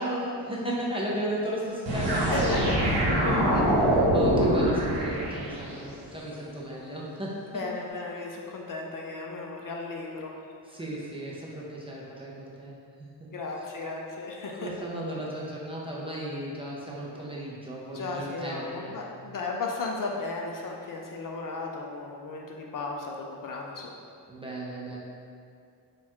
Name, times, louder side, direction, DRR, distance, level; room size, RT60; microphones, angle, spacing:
voice 1, 0.0-2.3 3.2-3.3 4.1-7.6 10.7-13.3 14.5-19.0 24.3-25.0, right 1 dB, 15° right, -6 dB, 0.5 m, -35 dB
sound 1, 1.9-5.8, right 1 dB, 85° right, 1.2 m, -24 dB
voice 2, 2.1-3.7 7.5-10.3 13.3-14.7 17.9-23.9, left 3 dB, 50° left, 0 dB, 0.4 m, -35 dB
4.5 x 2.4 x 4.3 m, 2.3 s
wide cardioid pair, 170°, 43 cm